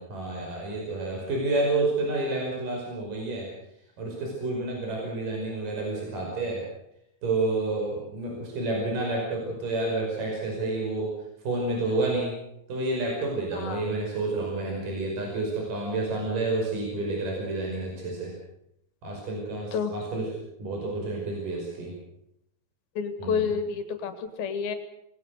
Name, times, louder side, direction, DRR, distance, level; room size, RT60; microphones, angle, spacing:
voice 1, 0.0-3.5 4.0-6.6 7.2-11.1 11.5-12.3 12.7-18.3 19.0-20.3 20.6-21.9 23.2-23.5, right 2 dB, 60° right, -1 dB, 7.1 m, -29 dB
voice 2, 13.5-13.9 19.7-19.9 23.0-24.8, left 6 dB, 85° left, 9 dB, 3.7 m, -29 dB
27.0 x 19.5 x 6.5 m, 0.77 s
omnidirectional pair, 4.2 m